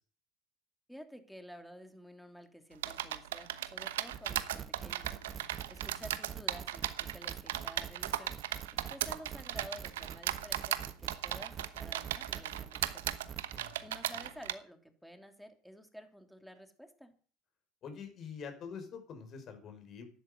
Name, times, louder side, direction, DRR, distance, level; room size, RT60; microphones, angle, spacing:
voice 1, 0.9-5.1 5.7-8.4 8.7-13.0 13.8-17.1, equal, ahead, 6 dB, 3.1 m, -51 dB
sound 1, 2.8-14.5, right 13 dB, 85° right, 1.0 m, -37 dB
sound 2, 4.1-13.6, right 9 dB, 45° right, 1.1 m, -45 dB
voice 2, 17.8-20.1, left 6 dB, 50° left, 7 dB, 5.5 m, -45 dB
12.5 x 11.0 x 8.1 m, 0.43 s
hypercardioid pair, 80°, 0 cm